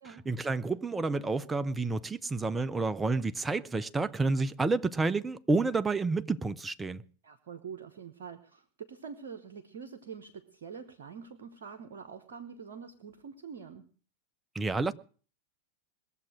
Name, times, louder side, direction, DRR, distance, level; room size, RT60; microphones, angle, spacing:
voice 1, 0.3-7.0 14.5-14.9, right 3 dB, 10° right, 0.6 m, -29 dB
voice 2, 7.2-13.9, right 6 dB, 55° right, 1.1 m, -45 dB
20.5 x 7.3 x 6.2 m
figure-of-eight pair, 90°, 0 cm